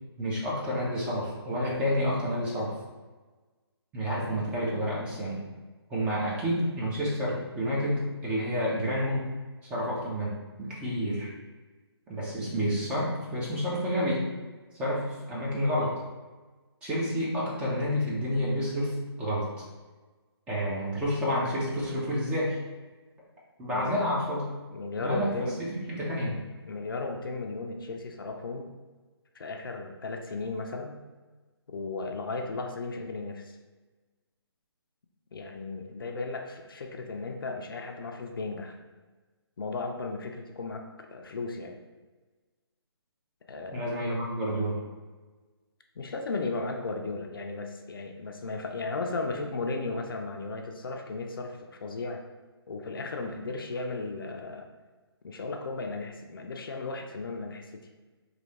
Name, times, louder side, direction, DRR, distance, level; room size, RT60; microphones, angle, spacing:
voice 1, 0.2-2.7 3.9-5.4 5.9-9.3 9.7-11.3 12.1-14.2 14.8-16.0 16.8-19.5 20.5-22.6 23.6-24.5 25.0-26.4 43.7-44.8, equal, 10° right, -6 dB, 0.6 m, -29 dB
voice 2, 24.7-25.6 26.6-28.7 29.3-31.0 31.7-33.6 35.3-38.8 39.6-41.8 43.5-44.0 46.0-52.2 52.7-54.7 55.2-57.8, left 3 dB, 55° left, 3 dB, 0.5 m, -35 dB
3.1 x 2.7 x 4.1 m, 1.3 s
figure-of-eight pair, 145°, 14 cm